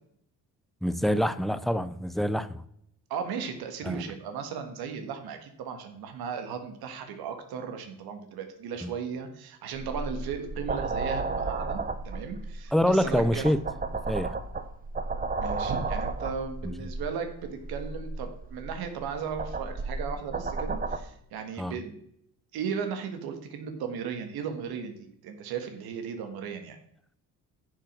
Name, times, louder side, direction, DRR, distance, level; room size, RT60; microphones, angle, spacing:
voice 1, 0.8-2.6 3.8-4.0 8.8-8.9 12.7-13.6 14.1-14.4 16.6-16.7 21.6-21.7, equal, ahead, 0.6 m, -26 dB
voice 2, 3.1-13.4 15.4-21.9 22.5-26.8, right 6 dB, 85° right, 1.6 m, -36 dB
sound 1, 9.8-21.0, right 3 dB, 25° right, 1.0 m, -33 dB
11.0 x 6.4 x 6.1 m
cardioid pair, 95°, 36 cm